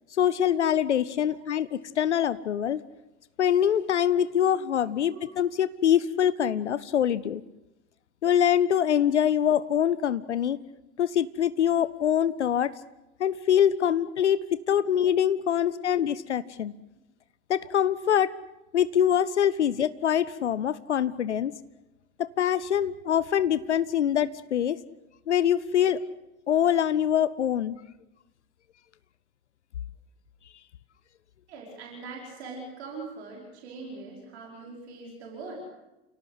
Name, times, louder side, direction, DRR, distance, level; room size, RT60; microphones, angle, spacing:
voice 1, 0.2-2.8 3.4-7.4 8.2-10.6 11.0-12.7 13.2-16.7 17.5-18.3 18.7-21.5 22.2-24.8 25.3-26.0 26.5-27.8, left 9 dB, 75° left, 17 dB, 0.8 m, -24 dB
voice 2, 15.6-16.0 31.5-35.6, right 3 dB, 65° right, -1 dB, 5.3 m, -42 dB
29.5 x 17.5 x 8.2 m, 0.98 s
figure-of-eight pair, 70°, 35 cm